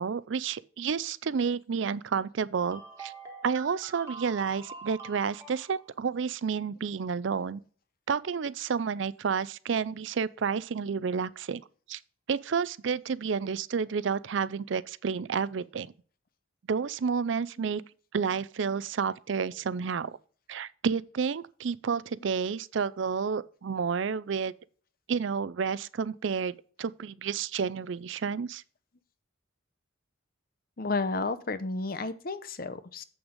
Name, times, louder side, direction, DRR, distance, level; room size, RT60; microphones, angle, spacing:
voice 1, 0.0-3.1 3.4-7.6 8.1-11.6 11.9-12.0 12.3-15.9 16.7-17.8 18.1-20.2 20.5-24.5 25.1-28.6, right 6 dB, 70° right, 0.4 m, -30 dB
sound 1, 2.7-5.9, right 4 dB, 15° right, 1.7 m, -45 dB
voice 2, 30.8-33.0, left 3 dB, 45° left, 0.7 m, -32 dB
7.9 x 6.1 x 5.1 m
head